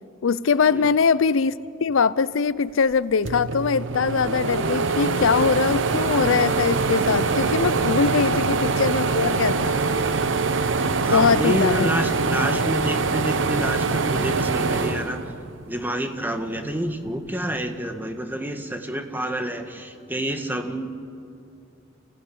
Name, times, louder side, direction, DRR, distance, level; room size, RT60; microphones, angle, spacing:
voice 1, 0.2-1.5 1.8-9.8 11.1-11.9, left 5 dB, 75° left, 17 dB, 0.5 m, -22 dB
sound 1, 2.9-3.0 3.2-15.8 16.3-17.4, right 4 dB, 65° right, 1.0 m, -24 dB
voice 2, 11.0-15.2 15.7-20.9, right 1 dB, 10° right, 6 dB, 1.4 m, -28 dB
30.0 x 15.0 x 8.5 m, 2.5 s
head